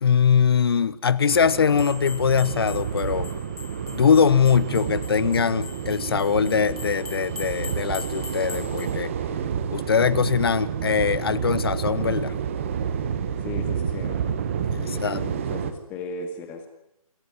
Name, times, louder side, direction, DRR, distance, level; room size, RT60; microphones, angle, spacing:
voice 1, 0.0-3.3 3.9-9.1 9.7-12.3 14.7-15.2, left 6 dB, 40° left, 19 dB, 1.0 m, -22 dB
sound 1, 1.3-15.7, right 7 dB, 20° right, 1.3 m, -29 dB
sound 2, 1.7-9.0, left 3 dB, 90° left, 3.0 m, -42 dB
voice 2, 13.4-14.2 14.8-16.7, left 3 dB, 10° left, 6 dB, 2.1 m, -36 dB
27.5 x 14.0 x 9.7 m, 0.80 s
hypercardioid pair, 170°, 19 cm